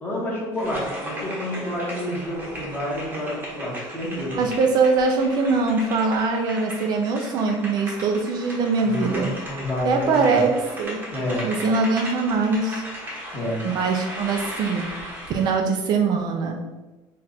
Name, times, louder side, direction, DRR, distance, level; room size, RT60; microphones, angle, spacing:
voice 1, 0.0-4.4 8.8-10.4 11.1-11.5 13.3-14.0, left 1 dB, 20° left, -4 dB, 1.2 m, -29 dB
sound 1, 0.5-15.6, equal, 20° right, 0.9 m, -36 dB
voice 2, 4.3-9.4 9.8-11.0 11.4-12.8 13.6-14.9 15.3-16.6, right 4 dB, 50° right, 3 dB, 0.4 m, -22 dB
4.3 x 2.4 x 4.1 m, 1.1 s
cardioid pair, 150°, 9 cm